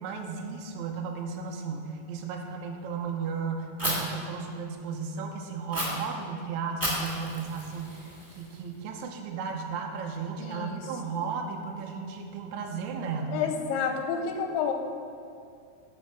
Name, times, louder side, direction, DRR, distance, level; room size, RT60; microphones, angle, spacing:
voice 1, 0.0-13.5, right 5 dB, 80° right, 2 dB, 1.7 m, -35 dB
Fire, 3.8-3.9 5.7-5.8 6.8-8.8, right 1 dB, 10° right, 1.5 m, -33 dB
voice 2, 10.4-10.8 13.3-14.7, left 6 dB, 90° left, 4 dB, 2.7 m, -29 dB
12.0 x 5.6 x 6.2 m, 2.4 s
omnidirectional pair, 4.5 m